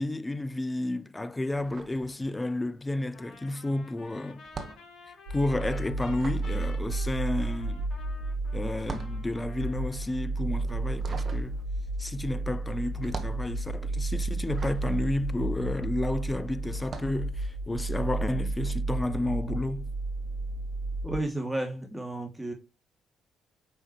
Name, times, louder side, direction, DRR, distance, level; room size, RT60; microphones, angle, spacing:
voice 1, 0.0-4.4 5.3-7.9 8.5-11.6 12.0-19.9, left 2 dB, 20° left, 0.7 m, -31 dB
sound 1, 1.5-2.7 3.0-16.2 16.7-17.3, right 4 dB, 45° right, 1.5 m, -44 dB
Trumpet, 3.1-10.2, left 4 dB, 55° left, 2.8 m, -51 dB
sound 2, 5.3-21.2, right 2 dB, 70° right, 4.3 m, -32 dB
voice 2, 21.0-22.5, right 1 dB, 5° right, 2.7 m, -32 dB
9.1 x 5.7 x 3.2 m
hypercardioid pair, 50°, 0 cm